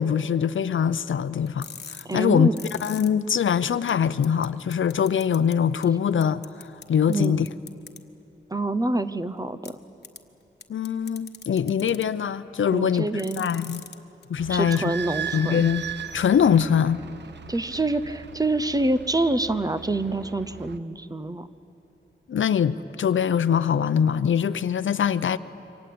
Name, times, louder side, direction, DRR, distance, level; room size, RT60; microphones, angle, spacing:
voice 1, 0.0-2.5 2.8-7.5 10.7-13.1 13.4-13.8 14.3-14.8 15.3-15.8 16.1-17.0 22.3-25.4, left 8 dB, 75° left, 14 dB, 0.7 m, -23 dB
sound 1, 1.5-3.1 3.5-3.6 3.9-4.0 4.2-4.5 4.7-5.5 5.8-5.9 6.2-6.8 7.1-8.0 9.6-9.7 10.0-10.2 10.6-12.0 13.0-14.0 14.2-14.3 14.7-14.8, left 6 dB, 55° left, 1.3 m, -40 dB
voice 2, 2.0-2.5 7.1-7.4 8.5-9.8 12.7-13.4 14.5-15.6 17.5-21.5, right 2 dB, 20° right, 12 dB, 0.7 m, -26 dB
Idling / Squeak, 14.4-20.8, right 8 dB, 60° right, 0.9 m, -38 dB
27.5 x 24.5 x 8.6 m, 2.8 s
wide cardioid pair, 165°, 20 cm